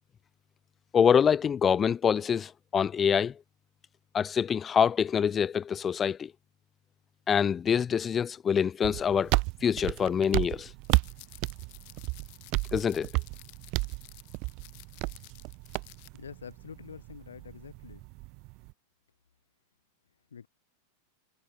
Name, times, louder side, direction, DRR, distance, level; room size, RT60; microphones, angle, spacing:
voice 1, 0.9-3.3 4.1-6.3 7.3-9.3 9.6-10.7 12.7-13.1, left 7 dB, 20° left, 1.0 m, -25 dB
sound 1, 8.8-18.7, right 28 dB, 45° right, 0.5 m, -33 dB
sound 2, 10.8-16.1, left 34 dB, 45° left, 3.8 m, -53 dB
voice 2, 16.1-18.0 20.3-20.5, left 7 dB, 70° left, 2.6 m, -46 dB
figure-of-eight pair, 90°, 0 cm